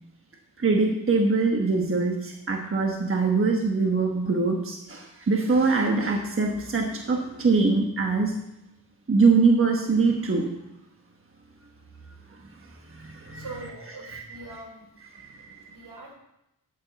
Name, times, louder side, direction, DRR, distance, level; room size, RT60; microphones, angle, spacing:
voice 1, 0.6-8.3 9.1-10.5 12.9-13.4 14.0-14.2 15.1-15.7, right 4 dB, 35° right, 1 dB, 1.3 m, -23 dB
voice 2, 13.3-14.9 15.7-16.1, right 2 dB, 80° right, 0 dB, 3.7 m, -42 dB
12.0 x 8.4 x 4.1 m, 0.86 s
wide cardioid pair, 110°, 39 cm